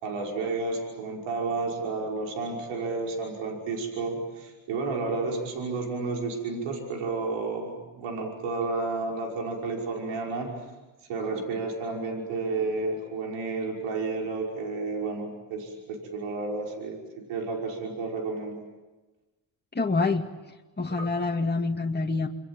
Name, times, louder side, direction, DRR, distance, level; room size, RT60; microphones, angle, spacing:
voice 1, 0.0-10.5 11.1-18.6 20.9-21.1, right 3 dB, 90° right, 1 dB, 5.7 m, -31 dB
voice 2, 19.7-20.2 20.8-22.3, left 3 dB, 20° left, 2 dB, 2.2 m, -26 dB
28.0 x 22.5 x 9.0 m, 1.2 s
supercardioid pair, 65°, 48 cm